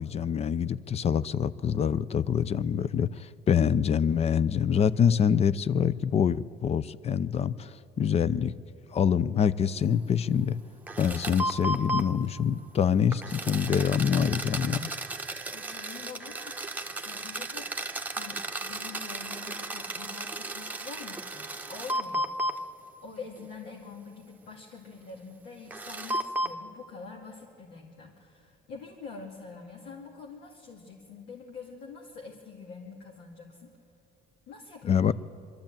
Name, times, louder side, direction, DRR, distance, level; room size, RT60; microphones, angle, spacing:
voice 1, 0.0-8.5 8.9-10.6 11.0-14.9 34.9-35.1, left 7 dB, 40° left, 18 dB, 0.6 m, -25 dB
sound 1, 10.9-12.1 13.1-22.6 23.4-23.5 25.7-26.5, right 1 dB, 10° right, 1.1 m, -34 dB
voice 2, 15.5-16.6 16.9-22.3 23.0-33.7 34.5-35.1, left 4 dB, 75° left, -1 dB, 2.3 m, -45 dB
22.5 x 13.5 x 9.0 m, 2.7 s
cardioid pair, 110°, 17 cm